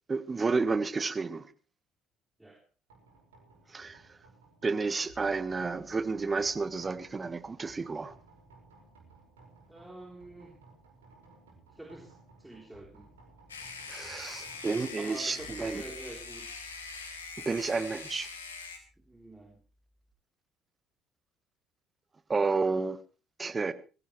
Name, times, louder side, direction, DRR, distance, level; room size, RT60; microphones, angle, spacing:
voice 1, 0.1-1.5 3.7-4.2 4.6-8.1 13.9-15.8 17.4-18.3 22.3-23.0 23.4-23.7, right 4 dB, 30° right, 1.5 m, -31 dB
sound 1, 2.9-20.1, right 2 dB, 80° right, 5.6 m, -58 dB
voice 2, 9.7-10.6 11.7-13.1 15.0-16.6 19.1-19.6, right 2 dB, 10° right, 3.8 m, -47 dB
sound 2, 13.5-18.8, left 4 dB, 90° left, 2.5 m, -43 dB
22.0 x 16.5 x 3.3 m
hypercardioid pair, 55°, 0 cm